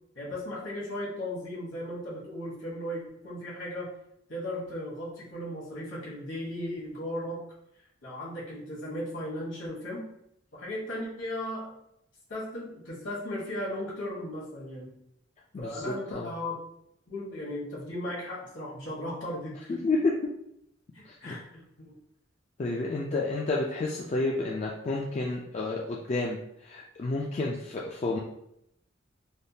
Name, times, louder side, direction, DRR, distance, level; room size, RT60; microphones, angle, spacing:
voice 1, 0.1-3.9 4.3-7.4 8.0-10.1 10.5-11.7 12.3-15.0 15.6-16.6 17.1-19.7 20.9-21.4 21.8-21.9, left 1 dB, 70° left, -4 dB, 1.2 m, -36 dB
voice 2, 15.5-16.3 19.7-20.1 21.2-21.3 22.6-28.2, left 3 dB, 35° left, -3 dB, 0.3 m, -30 dB
3.4 x 2.2 x 2.7 m, 0.77 s
head